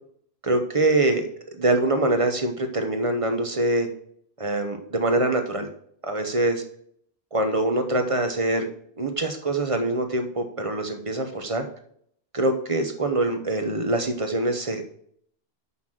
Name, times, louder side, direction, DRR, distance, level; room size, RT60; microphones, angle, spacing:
voice 1, 0.4-1.3 1.6-3.9 4.4-5.7 6.0-6.6 7.3-8.7 9.0-11.7 12.3-14.8, right 2 dB, 35° right, 6 dB, 1.0 m, -24 dB
5.8 x 5.7 x 6.2 m, 0.65 s
omnidirectional pair, 1.1 m